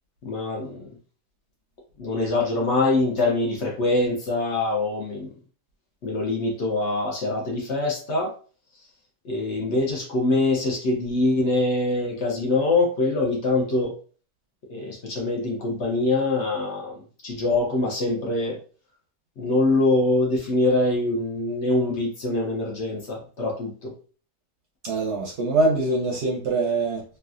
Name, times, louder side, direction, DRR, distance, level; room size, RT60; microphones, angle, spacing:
voice 1, 0.2-0.9 2.0-5.3 6.0-8.3 9.2-13.9 14.7-18.6 19.4-23.9, left 2 dB, 60° left, 0.9 m, -24 dB
voice 2, 24.8-27.0, right 2 dB, 60° right, 0.8 m, -23 dB
3.1 x 2.3 x 2.4 m
omnidirectional pair, 1.6 m